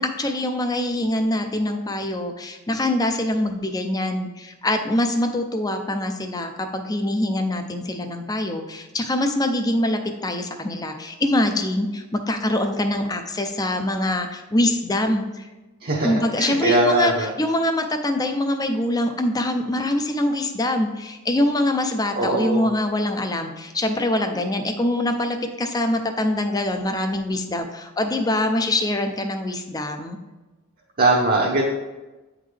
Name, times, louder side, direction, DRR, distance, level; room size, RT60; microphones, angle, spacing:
voice 1, 0.0-15.5 16.0-30.2, left 1 dB, 20° left, 6 dB, 0.5 m, -24 dB
voice 2, 15.8-17.3 22.1-22.6 31.0-31.6, right 2 dB, 45° right, -4 dB, 0.8 m, -21 dB
8.8 x 3.7 x 3.3 m, 1.1 s
head